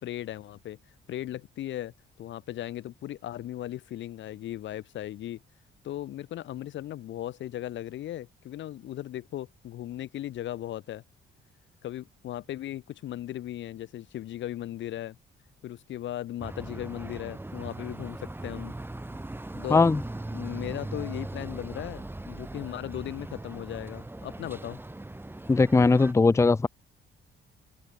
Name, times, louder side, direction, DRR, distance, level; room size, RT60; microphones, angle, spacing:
voice 1, 0.0-0.8 1.1-5.4 5.8-11.0 11.8-15.2 15.6-18.7 19.5-19.9 20.3-24.8, left 13 dB, 70° left, 0.8 m, -37 dB
sound 1, 16.4-26.1, right 2 dB, 10° right, 1.8 m, -39 dB
voice 2, 25.5-26.7, left 3 dB, 15° left, 0.5 m, -20 dB
open air
cardioid pair, 90°, 20 cm